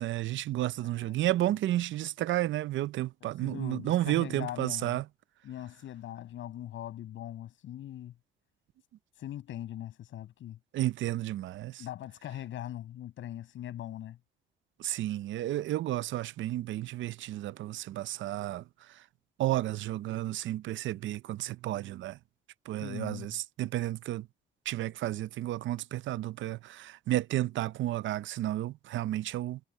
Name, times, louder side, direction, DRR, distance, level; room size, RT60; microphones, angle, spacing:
voice 1, 0.0-5.0 10.7-11.8 14.8-18.6 19.4-22.2 22.7-24.3 24.7-29.6, right 14 dB, 70° right, 0.6 m, -32 dB
voice 2, 0.8-1.5 3.4-5.0 5.4-8.1 9.2-10.6 11.8-14.2 22.8-23.4, left 12 dB, 75° left, 6.2 m, -41 dB
cardioid pair, 90°, 20 cm